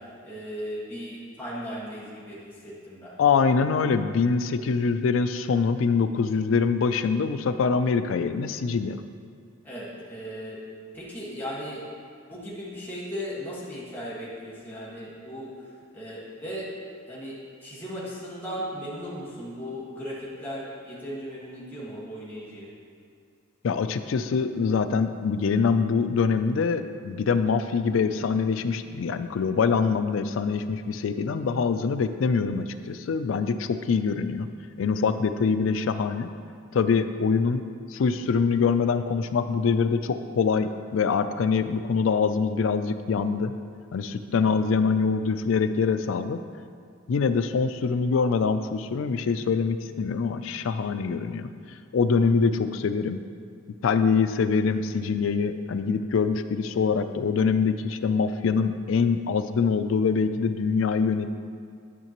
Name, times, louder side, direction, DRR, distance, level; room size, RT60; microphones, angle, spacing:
voice 1, 0.2-3.1 9.6-10.6 10.9-11.8 12.3-15.5 15.9-16.7 17.0-22.7, equal, 10° left, -8 dB, 1.6 m, -37 dB
voice 2, 3.2-9.0 23.6-34.5 34.8-36.3 36.7-37.6 37.9-43.5 43.9-46.4 47.1-53.2 53.8-61.4, left 5 dB, 70° left, 10 dB, 0.4 m, -24 dB
11.0 x 6.5 x 3.0 m, 2.3 s
head